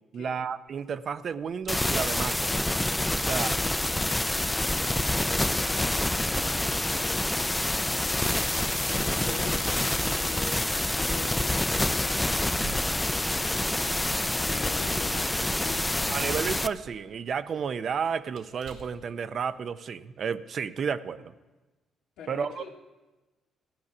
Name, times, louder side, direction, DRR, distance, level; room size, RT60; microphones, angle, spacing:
voice 1, 0.1-2.6 3.2-3.5 16.1-21.3 22.3-22.7, right 6 dB, 55° right, 14 dB, 0.5 m, -32 dB
Keys jangling, 0.7-19.7, right 5 dB, 85° right, 1.8 m, -50 dB
sound 1, 1.7-16.7, left 1 dB, 10° left, 0.4 m, -27 dB
voice 2, 3.3-7.3 7.8-12.4 13.8-16.2 22.2-22.7, left 4 dB, 85° left, 1 dB, 1.9 m, -44 dB
15.0 x 8.2 x 6.0 m, 1.2 s
cardioid pair, 90°, 0 cm